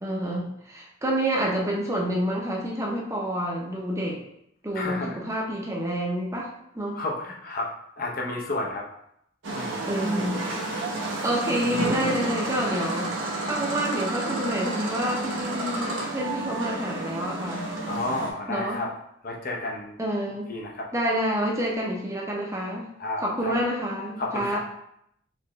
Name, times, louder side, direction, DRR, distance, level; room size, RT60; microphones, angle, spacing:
voice 1, 0.0-4.2 4.6-6.5 6.7-7.0 9.9-10.4 11.2-13.1 13.4-17.7 18.5-18.8 20.0-20.5 20.9-22.9 23.2-24.6, equal, 15° right, -2 dB, 0.7 m, -28 dB
voice 2, 4.7-5.2 6.9-8.8 9.5-9.9 17.9-18.9 19.2-20.0 20.5-20.9 23.0-23.5 24.2-24.6, left 2 dB, 50° left, -1 dB, 0.7 m, -31 dB
sound 1, 9.4-18.3, right 2 dB, 75° right, 0.8 m, -30 dB
4.4 x 3.1 x 3.1 m, 0.75 s
head